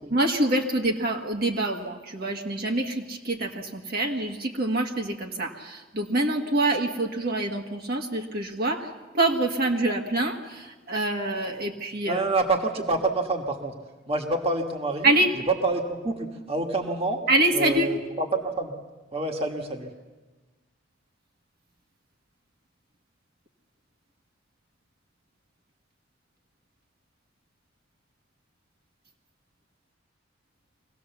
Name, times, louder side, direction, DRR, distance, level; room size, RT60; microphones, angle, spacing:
voice 1, 0.1-8.9 9.1-12.2 15.0-15.3 17.3-17.9, right 2 dB, 55° right, 1 dB, 1.6 m, -26 dB
voice 2, 12.1-13.7 14.1-15.1 15.5-17.2 17.5-18.7 19.1-19.9, right 3 dB, 30° right, 3 dB, 1.7 m, -27 dB
24.5 x 17.5 x 7.1 m, 1.2 s
head